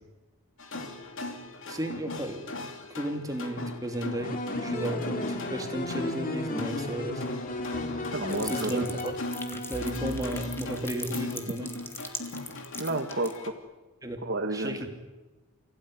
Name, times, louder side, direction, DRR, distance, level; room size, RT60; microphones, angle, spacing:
sound 1, 0.6-13.5, left 2 dB, 60° left, 3.0 m, -39 dB
voice 1, 1.7-2.4 2.9-7.3 8.4-9.1 9.5-11.7 14.0-14.2 14.5-14.9, right 1 dB, 15° right, 3 dB, 2.9 m, -34 dB
sound 2, 4.2-10.9, left 1 dB, 40° left, 2.6 m, -35 dB
voice 2, 8.1-8.9 12.8-13.5 14.2-14.9, right 2 dB, 50° right, 1 dB, 2.0 m, -31 dB
sound 3, 8.3-13.4, left 3 dB, 10° left, 2.3 m, -40 dB
30.0 x 17.0 x 9.9 m, 1.1 s
head